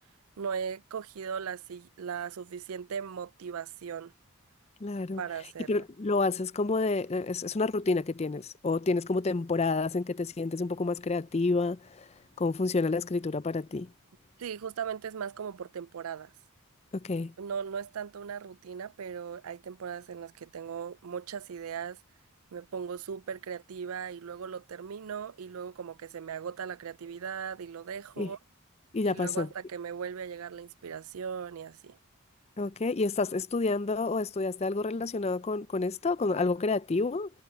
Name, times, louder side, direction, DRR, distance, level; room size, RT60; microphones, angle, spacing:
voice 1, 0.4-4.1 5.2-5.8 14.4-16.3 17.4-22.0 22.5-28.4 29.0-32.0, right 7 dB, 85° right, 0.4 m, -38 dB
voice 2, 4.8-5.2 5.7-12.1 12.4-13.9 16.9-17.3 28.2-28.3 28.9-29.5 32.6-37.3, left 3 dB, 30° left, 0.5 m, -29 dB
head